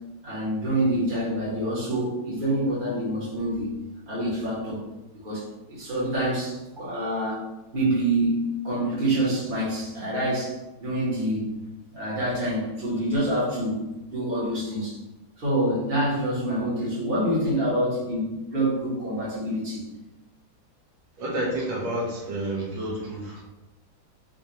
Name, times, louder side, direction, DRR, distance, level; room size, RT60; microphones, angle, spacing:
voice 1, 0.2-3.7 4.1-4.8 5.2-7.4 7.7-11.6 11.9-15.0 15.4-19.8, right 1 dB, 30° right, -8 dB, 1.5 m, -26 dB
voice 2, 21.2-23.4, right 1 dB, 85° right, -3 dB, 1.8 m, -29 dB
5.1 x 2.8 x 3.1 m, 1.0 s
omnidirectional pair, 2.1 m